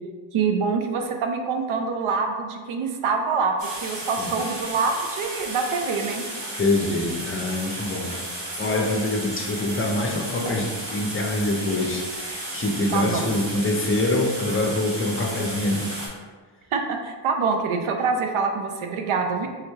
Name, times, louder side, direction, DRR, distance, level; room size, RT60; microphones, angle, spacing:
voice 1, 0.3-6.2 12.9-13.3 16.7-19.5, right 5 dB, 75° right, 4 dB, 0.6 m, -25 dB
sound 1, 3.6-16.1, right 1 dB, 60° right, 1.4 m, -33 dB
voice 2, 6.6-8.2 8.6-15.9, left 2 dB, 25° left, 1 dB, 0.6 m, -25 dB
3.5 x 3.0 x 3.4 m, 1.5 s
cardioid pair, 70°, 48 cm